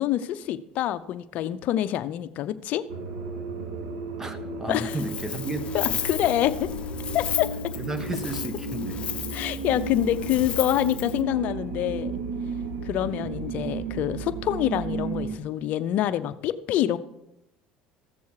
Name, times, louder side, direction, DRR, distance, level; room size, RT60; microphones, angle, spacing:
voice 1, 0.0-2.8 4.7-5.0 5.7-6.7 7.1-7.5 9.3-12.2 12.8-17.0, left 12 dB, 60° left, 0.6 m, -26 dB
sound 1, 2.9-15.4, right 3 dB, 85° right, 2.0 m, -33 dB
voice 2, 4.2-5.7 7.8-9.0 12.9-13.1, right 2 dB, 15° right, 1.2 m, -33 dB
Wind, 4.7-11.2, left 8 dB, 40° left, 0.9 m, -35 dB
15.0 x 7.0 x 4.8 m
supercardioid pair, 100°, 3 cm